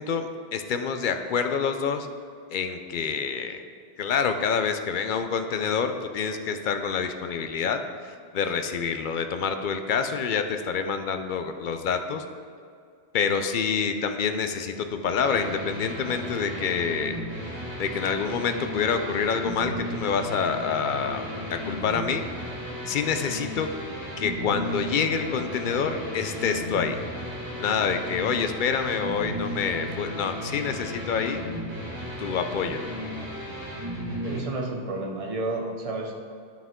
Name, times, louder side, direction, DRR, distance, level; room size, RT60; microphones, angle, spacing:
voice 1, 0.0-2.1 2.5-3.6 4.0-12.2 13.1-17.1 17.8-22.2 22.9-23.7 24.2-27.0 27.6-31.4 32.2-32.8, left 6 dB, 60° left, 7 dB, 0.6 m, -27 dB
sound 1, 15.2-34.4, equal, 20° right, 1.5 m, -35 dB
voice 2, 34.2-36.1, right 2 dB, 35° right, 1 dB, 0.9 m, -31 dB
9.6 x 5.7 x 3.6 m, 2.3 s
omnidirectional pair, 1.2 m